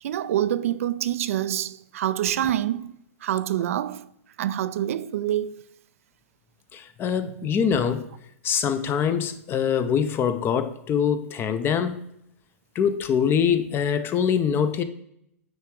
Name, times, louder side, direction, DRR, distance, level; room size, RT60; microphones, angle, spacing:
voice 1, 0.0-4.1 4.4-5.6, right 11 dB, 70° right, 0.4 m, -26 dB
voice 2, 6.7-8.1 8.4-12.0 12.7-14.8, left 7 dB, 30° left, 0.7 m, -24 dB
9.2 x 3.4 x 4.7 m
hypercardioid pair, 115°, 8 cm